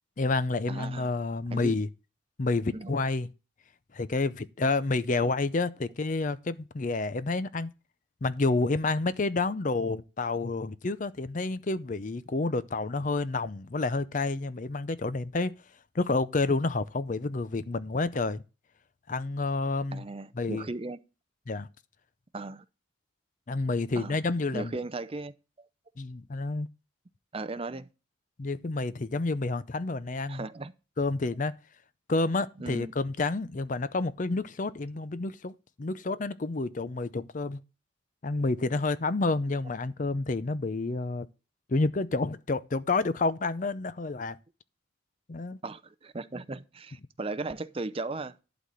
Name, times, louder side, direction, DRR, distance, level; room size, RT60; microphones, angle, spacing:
voice 1, 0.2-1.9 2.4-3.3 3.9-7.7 8.2-15.5 15.9-18.4 19.1-20.0 20.3-20.6 21.5-21.7 23.5-24.8 26.0-26.7 28.4-30.5 31.0-31.5 32.1-37.6 38.2-41.3 41.7-44.4 45.3-45.6, left 3 dB, 40° left, 0.5 m, -29 dB
voice 2, 0.7-1.1 1.5-1.7 2.7-3.0 19.9-21.0 22.3-22.6 24.0-24.2 24.5-25.3 27.3-27.9 30.3-30.7 32.6-32.9 45.6-48.4, right 3 dB, 30° right, 0.5 m, -36 dB
11.5 x 4.1 x 7.5 m
head